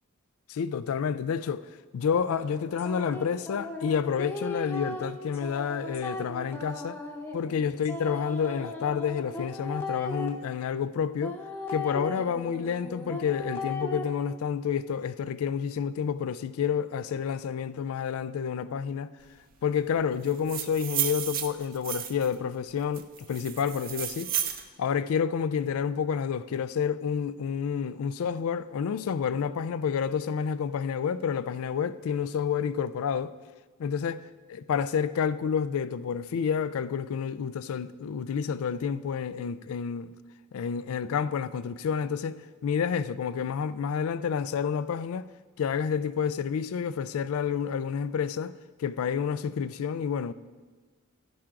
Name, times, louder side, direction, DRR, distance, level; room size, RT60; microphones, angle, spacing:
voice 1, 0.5-1.7 1.9-7.0 7.3-11.4 11.7-19.1 19.6-24.3 24.8-33.3 33.8-34.2 34.5-40.1 40.5-45.3 45.6-48.5 48.8-50.3, left 7 dB, 70° left, 0.3 m, -29 dB
sound 1, 2.1-10.3 11.2-14.0, left 2 dB, 10° left, 0.8 m, -37 dB
sound 2, 20.3-22.3 22.9-24.6, right 10 dB, 40° right, 0.5 m, -32 dB
11.5 x 10.5 x 2.5 m
head